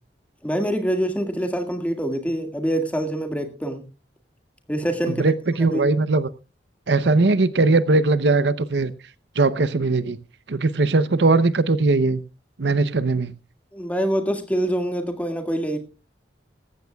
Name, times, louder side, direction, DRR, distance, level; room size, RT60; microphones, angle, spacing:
voice 1, 0.4-3.8 4.7-5.2 5.7-5.8 13.7-15.8, equal, 10° left, 6 dB, 1.9 m, -25 dB
voice 2, 5.1-6.3 6.9-8.9 9.4-10.2 10.5-12.2 12.6-13.3, right 3 dB, 70° right, 15 dB, 0.7 m, -20 dB
18.5 x 15.0 x 2.3 m, 0.31 s
head